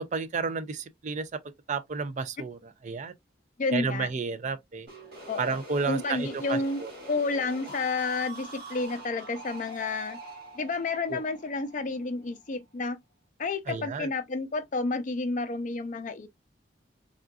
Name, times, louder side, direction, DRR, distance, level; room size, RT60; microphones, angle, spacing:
voice 1, 0.0-1.4 1.7-2.6 2.8-3.1 3.7-4.9 5.4-6.9 11.1-11.2 13.7-14.1, right 4 dB, 45° right, 0.4 m, -31 dB
voice 2, 3.6-4.1 5.3-5.6 5.9-6.8 7.1-10.2 10.5-13.0 13.4-16.3, left 3 dB, 45° left, 0.5 m, -30 dB
sound 1, 4.9-12.6, right 1 dB, 60° right, 1.4 m, -44 dB
3.5 x 2.4 x 2.3 m
head